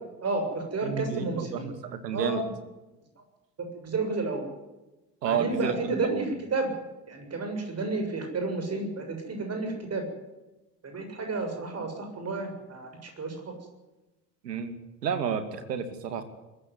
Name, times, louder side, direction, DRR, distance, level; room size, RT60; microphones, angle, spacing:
voice 1, 0.2-1.7 2.1-2.5 3.6-4.5 5.2-6.8 7.1-10.0 10.8-13.5, right 3 dB, 30° right, 5 dB, 7.2 m, -31 dB
voice 2, 0.8-2.4 5.2-5.8 6.1-6.2 14.4-14.8 15.0-16.2, right 7 dB, 70° right, 10 dB, 2.6 m, -30 dB
22.5 x 14.5 x 9.6 m, 1.1 s
figure-of-eight pair, 65°, 49 cm